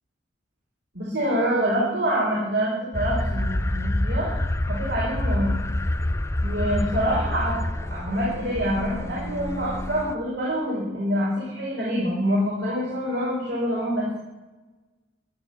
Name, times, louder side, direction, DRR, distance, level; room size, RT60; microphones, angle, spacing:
voice 1, 0.9-4.3 4.6-5.5 6.4-7.6 7.9-14.1, equal, 75° right, -6 dB, 4.6 m, -26 dB
sound 1, 2.9-10.1, left 1 dB, 15° left, 0.5 m, -27 dB
12.5 x 11.0 x 7.9 m, 1.2 s
head